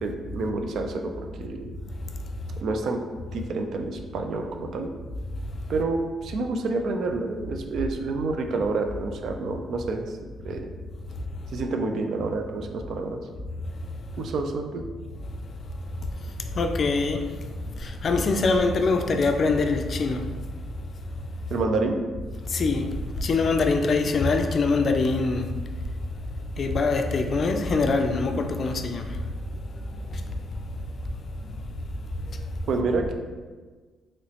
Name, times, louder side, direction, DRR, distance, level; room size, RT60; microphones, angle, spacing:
voice 1, 0.0-1.8 2.6-3.0 3.3-4.9 5.7-10.1 10.4-10.7 11.5-13.2 14.2-14.8 21.5-22.0 32.7-33.1, right 3 dB, 70° right, 4 dB, 0.4 m, -28 dB
voice 2, 16.6-17.2 17.8-20.2 22.5-22.9 23.2-25.4 26.6-29.0, left 3 dB, 50° left, 6 dB, 0.3 m, -23 dB
3.0 x 2.9 x 2.8 m, 1.4 s
cardioid pair, 90°, 0 cm